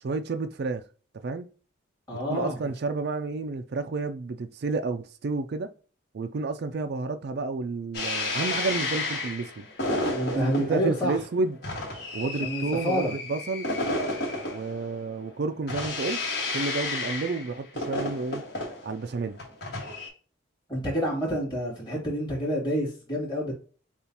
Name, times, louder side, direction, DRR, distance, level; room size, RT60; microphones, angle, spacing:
voice 1, 0.0-0.8 1.2-1.5 2.3-5.7 6.1-9.7 10.3-11.6 12.1-13.7 14.5-16.2 16.5-18.4 18.8-19.4, right 3 dB, 50° right, 0.4 m, -30 dB
voice 2, 2.1-2.6 10.1-11.1 12.4-13.1 20.7-23.5, equal, 25° left, 2.5 m, -28 dB
sound 1, 7.9-20.1, left 2 dB, 50° left, 1.6 m, -32 dB
6.9 x 2.4 x 2.9 m
head